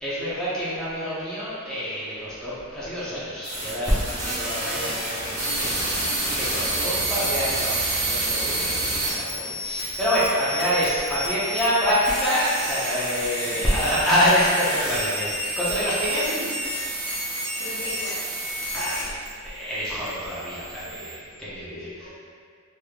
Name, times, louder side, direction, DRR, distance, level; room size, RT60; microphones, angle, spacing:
voice 1, 0.0-16.3 18.7-19.1 19.4-21.9, equal, 5° left, -11 dB, 0.7 m, -26 dB
sound 1, 3.4-19.3 19.6-21.1, right 1 dB, 90° right, 1.1 m, -29 dB
voice 2, 13.4-13.8 16.1-16.5 17.6-18.3 20.8-21.1 21.7-22.1, left 1 dB, 75° left, -8 dB, 0.8 m, -39 dB
3.3 x 3.0 x 2.3 m, 2.1 s
head